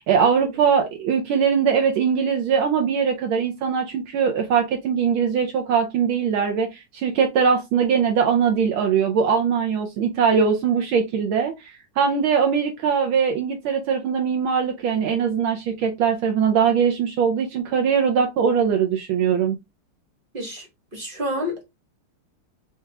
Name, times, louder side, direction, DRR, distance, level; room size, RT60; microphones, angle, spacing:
voice 1, 0.0-19.6, right 6 dB, 75° right, 1.4 m, -21 dB
voice 2, 20.3-20.7 20.9-21.6, equal, 25° right, 1.4 m, -29 dB
4.6 x 2.9 x 3.3 m
omnidirectional pair, 2.4 m